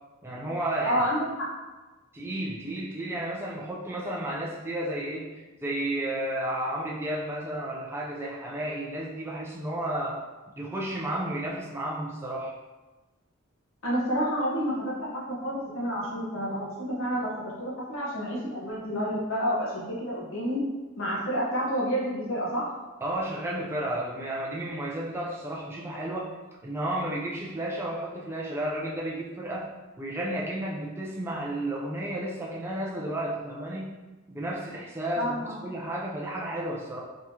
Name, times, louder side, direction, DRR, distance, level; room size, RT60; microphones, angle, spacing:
voice 1, 0.2-1.1 2.1-10.2 10.6-12.5 23.0-26.4 26.6-33.9 34.3-37.0, right 1 dB, 10° right, -4 dB, 0.4 m, -32 dB
voice 2, 0.8-1.5 13.8-20.7 21.0-22.7 35.1-35.6, equal, 70° left, -5 dB, 1.1 m, -29 dB
3.6 x 3.0 x 2.8 m, 1.2 s
head